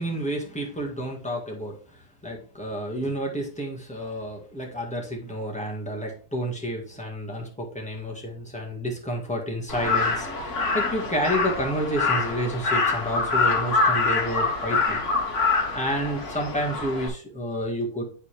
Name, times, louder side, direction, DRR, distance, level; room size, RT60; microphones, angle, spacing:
voice 1, 0.0-1.7 2.2-15.0 15.7-18.0, equal, 5° left, -1 dB, 1.6 m, -30 dB
Crow, 9.7-17.1, left 4 dB, 50° left, 1.9 m, -25 dB
9.5 x 4.0 x 3.3 m, 0.40 s
omnidirectional pair, 1.7 m